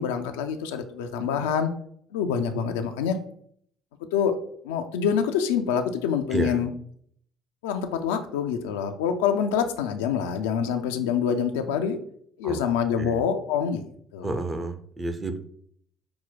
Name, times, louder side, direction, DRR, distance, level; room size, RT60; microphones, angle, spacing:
voice 1, 0.0-1.7 2.1-3.2 4.1-4.4 4.6-6.7 7.6-12.0 12.4-13.8 14.1-14.4, left 7 dB, 75° left, 6 dB, 0.4 m, -26 dB
voice 2, 6.3-6.6 12.4-12.6 13.0-13.2 14.2-15.4, right 2 dB, 25° right, 8 dB, 0.6 m, -30 dB
5.6 x 2.2 x 4.0 m, 0.64 s
figure-of-eight pair, 55°, 0 cm